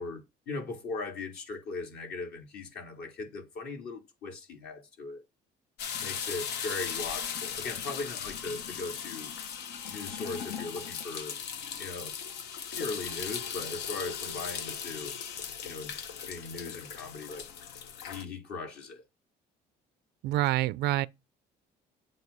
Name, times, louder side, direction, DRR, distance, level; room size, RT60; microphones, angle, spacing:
voice 1, 0.0-5.2 6.0-9.3 9.9-11.4 11.8-12.2 12.5-15.1 15.6-16.0 16.2-17.5 18.1-19.0, left 3 dB, 70° left, 2.4 m, -39 dB
sound 1, 5.8-18.2, left 7 dB, 85° left, 0.9 m, -38 dB
voice 2, 20.2-21.1, right 15 dB, 75° right, 0.5 m, -27 dB
7.6 x 2.6 x 5.4 m
cardioid pair, 110°, 17 cm